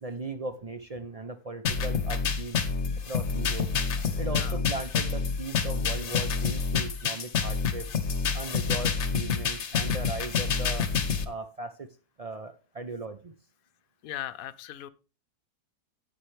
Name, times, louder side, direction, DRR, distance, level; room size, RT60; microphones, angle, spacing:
voice 1, 0.0-2.6 3.1-3.7 4.2-7.9 8.3-10.9 11.2-11.9 12.2-13.3, right 2 dB, 60° right, 9 dB, 0.3 m, -38 dB
sound 1, 1.6-11.2, left 5 dB, 50° left, 1.2 m, -28 dB
voice 2, 4.2-4.6 14.0-14.9, left 12 dB, 70° left, 13 dB, 1.0 m, -38 dB
10.0 x 8.3 x 3.3 m, 0.33 s
omnidirectional pair, 1.6 m